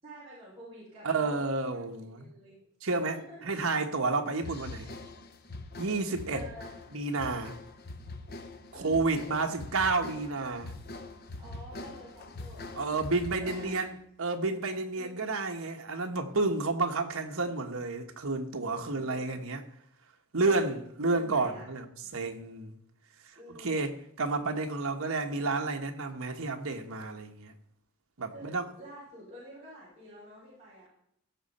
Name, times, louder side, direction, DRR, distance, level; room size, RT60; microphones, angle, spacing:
voice 1, 0.0-2.7 3.0-3.5 6.3-6.8 8.7-9.1 11.4-12.9 13.4-13.8 14.9-15.3 18.6-19.4 20.4-20.8 21.1-21.7 22.0-22.2 23.4-23.8 28.3-30.9, equal, 30° right, 5.6 m, -49 dB
voice 2, 1.0-2.3 2.8-4.9 5.8-6.4 6.9-7.5 8.7-10.7 12.8-13.9 14.2-19.6 20.3-21.9 22.1-22.7 23.5-27.5 28.2-28.7, right 3 dB, 70° right, 1.3 m, -30 dB
sound 1, 4.4-14.0, left 2 dB, 45° left, 0.9 m, -44 dB
16.0 x 6.6 x 4.3 m
head